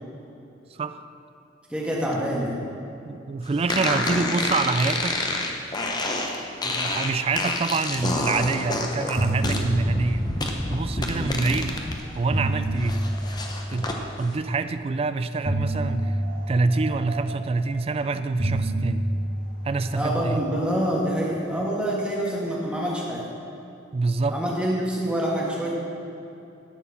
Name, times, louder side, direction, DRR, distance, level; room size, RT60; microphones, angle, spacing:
voice 1, 1.7-2.6 11.1-11.3 19.9-23.2 24.3-25.7, equal, 5° right, -5 dB, 1.7 m, -26 dB
voice 2, 3.1-5.2 6.6-10.3 10.7-11.8 12.1-13.0 13.7-16.2 16.5-19.1 19.6-20.4 23.9-24.4, right 3 dB, 30° right, 11 dB, 0.3 m, -26 dB
sound 1, 3.7-12.0 12.3-14.0, left 2 dB, 25° left, 0.8 m, -28 dB
sound 2, 8.5-8.7 9.0-11.3 12.0-14.4 15.4-17.9 18.4-21.0, right 1 dB, 50° right, 1.3 m, -29 dB
10.5 x 4.6 x 7.1 m, 2.9 s
head